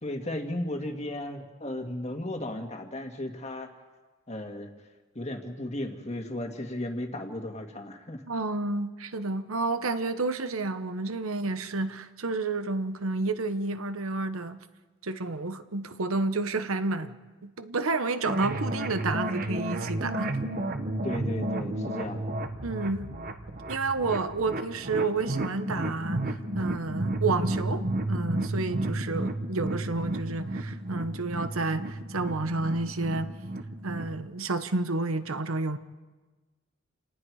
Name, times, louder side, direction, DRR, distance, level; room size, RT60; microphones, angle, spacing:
voice 1, 0.0-3.7 4.3-4.7 5.2-8.2 21.0-22.3, left 1 dB, 30° left, 1.9 m, -35 dB
voice 2, 8.3-14.6 15.0-17.2 17.4-20.3 22.6-23.1 23.7-33.3 33.8-35.8, right 3 dB, 80° right, 1.1 m, -30 dB
sound 1, 18.2-34.2, right 1 dB, 40° right, 1.3 m, -32 dB
29.0 x 19.0 x 4.9 m
head